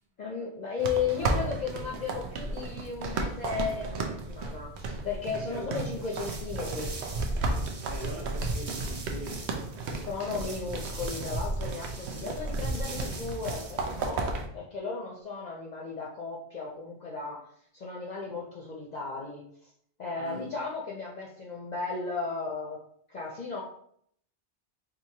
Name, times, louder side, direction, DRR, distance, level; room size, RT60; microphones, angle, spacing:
voice 1, 0.2-6.9 10.0-14.2 14.5-17.4 17.7-19.4 20.0-22.8 23.1-23.6, left 5 dB, 50° left, 0.6 m, -35 dB
sound 1, 0.8-14.5, right 3 dB, 85° right, 0.9 m, -34 dB
voice 2, 5.5-6.0 7.9-9.5 20.2-20.5, right 1 dB, 65° right, 1.1 m, -41 dB
sound 2, 5.7-14.1, right 1 dB, 45° right, 0.5 m, -37 dB
4.2 x 2.6 x 2.8 m
omnidirectional pair, 1.1 m